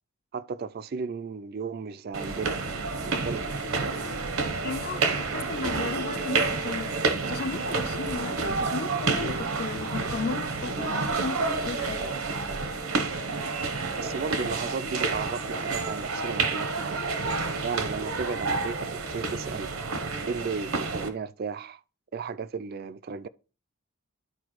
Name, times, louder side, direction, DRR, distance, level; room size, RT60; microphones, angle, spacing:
voice 1, 0.3-2.6 3.0-3.6 14.0-17.1 17.6-19.7 20.3-21.8 22.1-23.3, right 5 dB, 45° right, 0.3 m, -34 dB
sound 1, 2.1-21.1, right 4 dB, 75° right, 0.9 m, -29 dB
voice 2, 4.6-7.0 7.3-12.1, left 4 dB, 45° left, 0.4 m, -35 dB
12.0 x 4.6 x 3.0 m
head